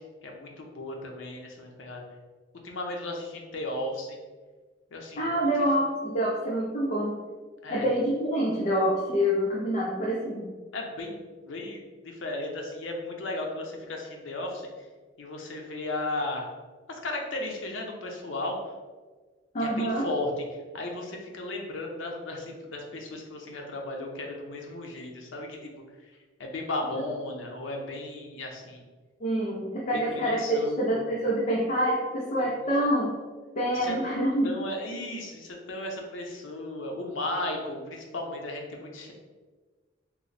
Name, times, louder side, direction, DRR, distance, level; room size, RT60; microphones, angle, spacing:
voice 1, 0.0-2.0 2.6-4.2 4.9-5.4 7.6-7.9 10.7-14.9 15.2-16.5 16.9-18.7 19.6-28.8 29.9-31.1 32.4-32.6 33.7-34.0 34.4-39.1, left 2 dB, 85° left, 1 dB, 0.6 m, -35 dB
voice 2, 5.2-7.2 7.7-10.5 19.5-20.0 29.2-30.4 30.8-33.1 33.6-34.6, equal, 35° left, -3 dB, 0.5 m, -26 dB
3.0 x 2.0 x 3.9 m, 1.4 s
head